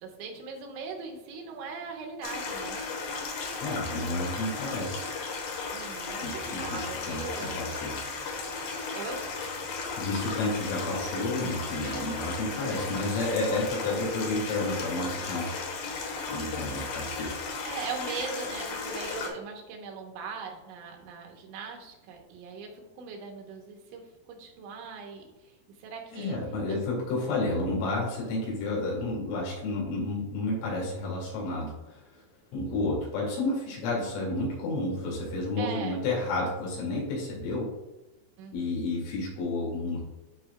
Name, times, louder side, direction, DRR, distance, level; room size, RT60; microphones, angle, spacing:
voice 1, 0.0-2.8 5.7-7.6 8.9-9.3 11.8-12.0 12.5-12.8 17.6-26.4 26.7-26.8 35.6-36.0 38.4-38.8, right 5 dB, 80° right, 2 dB, 3.3 m, -40 dB
Stream, 2.2-19.3, left 4 dB, 65° left, 2.3 m, -35 dB
voice 2, 3.6-5.2 6.2-8.0 10.0-15.6 16.3-17.4 26.1-32.2 32.5-37.7 38.5-40.0, left 2 dB, 85° left, -4 dB, 4.9 m, -31 dB
13.0 x 4.3 x 2.3 m, 1.0 s
omnidirectional pair, 5.5 m